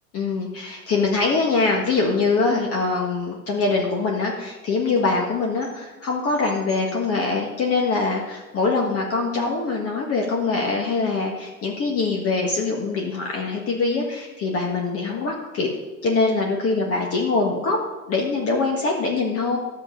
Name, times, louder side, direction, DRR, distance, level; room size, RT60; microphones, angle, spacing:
voice 1, 0.1-15.7 16.0-17.8 18.1-19.6, left 3 dB, 35° left, 0 dB, 1.6 m, -23 dB
10.5 x 7.4 x 5.1 m, 1.2 s
hypercardioid pair, 115°, 42 cm